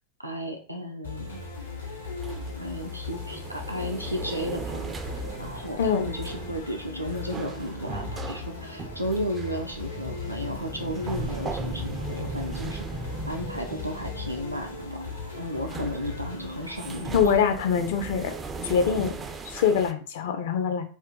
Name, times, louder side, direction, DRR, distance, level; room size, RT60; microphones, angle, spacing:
voice 1, 0.2-1.4 2.6-4.9 5.4-13.0 13.3-15.0 15.3-17.4, equal, 90° right, 2 dB, 0.4 m, -34 dB
sound 1, 1.0-17.0, left 4 dB, 75° left, 0.9 m, -38 dB
sound 2, 1.3-19.9, right 3 dB, 20° right, 0.3 m, -38 dB
voice 2, 17.1-18.3 18.6-19.1 19.4-20.8, left 7 dB, 55° left, 7 dB, 0.5 m, -24 dB
2.5 x 2.2 x 3.7 m, 0.41 s
figure-of-eight pair, 90°, 0 cm